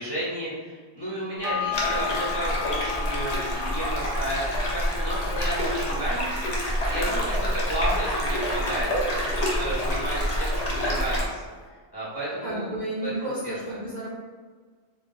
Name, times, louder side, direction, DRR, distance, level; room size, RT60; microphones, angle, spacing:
voice 1, 0.0-6.6 6.9-12.7 13.0-13.8, right 1 dB, 25° left, -10 dB, 0.9 m, -33 dB
sound 1, 1.4-10.2 10.5-10.6, left 9 dB, 90° right, 0.9 m, -37 dB
sound 2, 1.7-11.3, equal, 45° left, 0.6 m, -27 dB
voice 2, 12.4-14.1, right 1 dB, 50° right, -7 dB, 0.6 m, -32 dB
2.6 x 2.1 x 3.8 m, 1.5 s
omnidirectional pair, 1.1 m